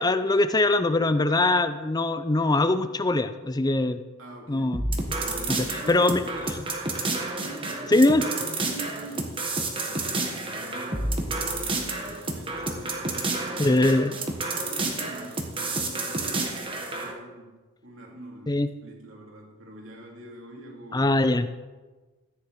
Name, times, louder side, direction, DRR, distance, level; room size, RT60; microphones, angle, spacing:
voice 1, 0.0-4.0 4.5-4.8 5.5-6.2 7.9-8.2 13.6-14.1 18.5-18.7 20.9-21.5, left 2 dB, 15° left, 11 dB, 0.5 m, -22 dB
voice 2, 4.2-4.9 5.2-6.6 7.4-9.5 9.8-21.2, right 1 dB, 60° right, -1 dB, 2.8 m, -44 dB
sound 1, 4.7-17.1, right 2 dB, 25° right, 1.4 m, -30 dB
14.5 x 9.9 x 4.8 m, 1.3 s
head